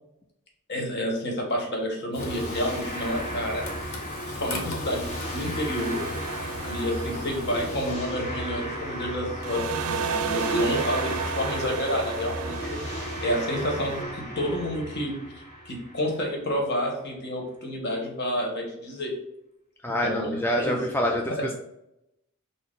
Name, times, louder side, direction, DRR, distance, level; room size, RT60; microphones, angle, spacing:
voice 1, 0.7-3.6 4.2-6.0 6.7-12.7 13.2-19.1 20.0-20.8 21.0-21.4, equal, 55° left, 0 dB, 1.2 m, -29 dB
Frying (food), 2.1-7.9, left 2 dB, 80° left, 1.0 m, -39 dB
sound 1, 2.2-16.5, equal, 35° left, 1.1 m, -35 dB
sound 2, 5.8-9.1 9.4-14.0, right 5 dB, 70° right, 0.4 m, -33 dB
voice 2, 19.8-21.5, equal, 10° left, 0 dB, 0.3 m, -26 dB
5.9 x 2.0 x 3.7 m, 0.83 s
head